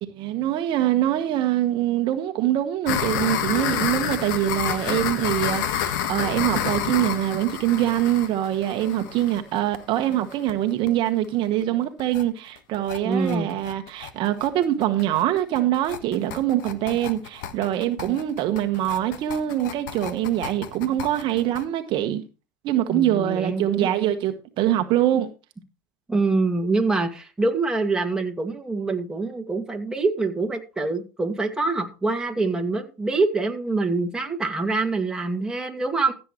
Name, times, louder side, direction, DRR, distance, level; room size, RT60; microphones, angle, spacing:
voice 1, 0.0-22.2 22.6-25.3, right 12 dB, 50° right, 1.2 m, -24 dB
sound 1, 2.9-10.5 10.9-11.0 11.2-11.3 11.6-11.7 12.0-12.2 12.6-21.6, left 9 dB, 70° left, 1.4 m, -29 dB
voice 2, 13.0-13.5 18.1-18.2 22.9-23.9 26.1-36.1, right 3 dB, 5° right, 2.1 m, -25 dB
15.0 x 7.6 x 3.1 m
hypercardioid pair, 95°, 11 cm